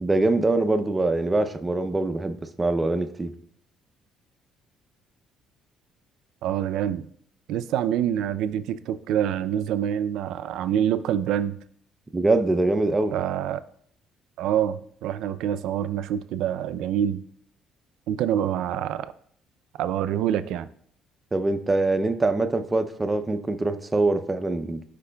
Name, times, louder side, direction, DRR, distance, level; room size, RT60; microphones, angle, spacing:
voice 1, 0.0-3.3 12.1-13.1 21.3-24.8, right 2 dB, 15° right, 9 dB, 0.5 m, -23 dB
voice 2, 6.4-7.1 7.5-11.6 13.1-13.6 14.4-17.2 18.1-19.1 19.8-20.7, right 10 dB, 75° right, 12 dB, 0.4 m, -26 dB
12.0 x 5.1 x 2.2 m, 0.63 s
cardioid pair, 140°, 0 cm